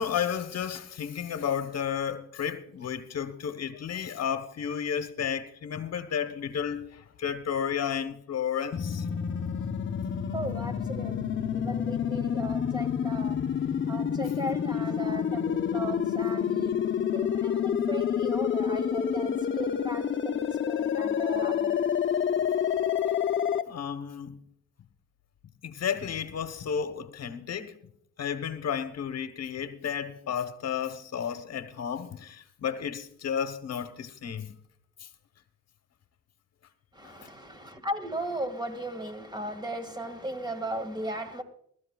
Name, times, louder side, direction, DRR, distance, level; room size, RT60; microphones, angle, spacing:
voice 1, 0.0-9.0 23.7-24.4 25.6-27.8 28.2-34.5 35.0-35.1 37.0-37.1, left 8 dB, 55° left, 1.1 m, -32 dB
sound 1, 8.7-23.6, left 8 dB, 40° left, 0.8 m, -28 dB
voice 2, 10.3-13.4 13.9-16.8 17.1-21.8 36.9-41.4, right 1 dB, 15° right, 2.0 m, -37 dB
23.5 x 13.5 x 2.4 m
cardioid pair, 90°, 30 cm